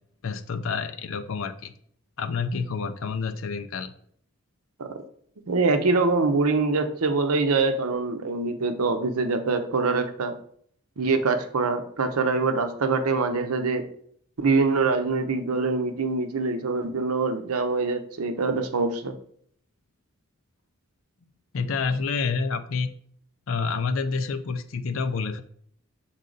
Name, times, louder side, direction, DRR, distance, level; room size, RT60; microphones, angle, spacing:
voice 1, 0.2-1.7 2.2-3.9 21.5-22.9 23.5-25.4, left 4 dB, 65° left, 9 dB, 0.5 m, -28 dB
voice 2, 5.5-10.4 11.0-13.9 14.4-19.1, right 3 dB, 90° right, 8 dB, 0.8 m, -24 dB
6.2 x 4.0 x 3.9 m, 0.63 s
head